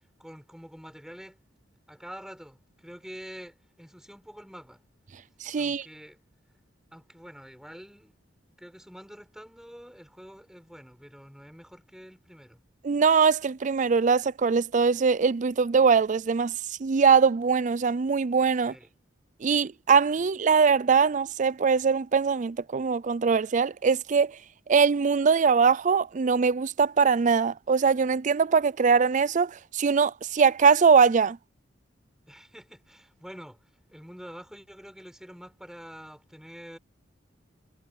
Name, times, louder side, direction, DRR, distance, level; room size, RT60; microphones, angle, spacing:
voice 1, 0.2-1.4 1.9-4.8 5.6-6.2 6.9-8.2 8.6-12.6 18.6-18.9 19.4-19.7 20.2-20.3 32.3-33.6 33.9-36.8, equal, 5° right, 5.1 m, -46 dB
voice 2, 5.4-5.9 12.8-16.5 16.8-18.7 19.4-24.3 24.7-31.4, right 5 dB, 40° right, 0.4 m, -22 dB
head